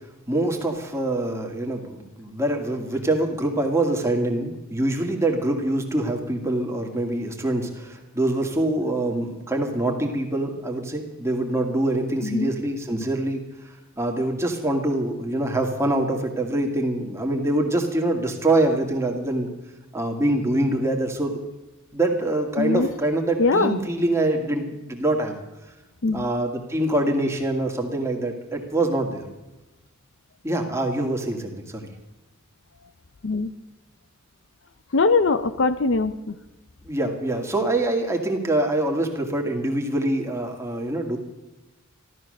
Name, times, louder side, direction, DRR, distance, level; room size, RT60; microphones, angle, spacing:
voice 1, 0.3-19.5 19.9-21.4 21.9-25.4 26.1-29.3 30.4-31.9 36.8-41.2, right 1 dB, 15° right, 2 dB, 2.1 m, -25 dB
voice 2, 22.6-22.9 23.4-23.8 26.0-26.2 33.2-33.5 34.9-36.4, left 3 dB, 60° left, 11 dB, 0.7 m, -21 dB
14.5 x 12.5 x 6.5 m, 1.0 s
head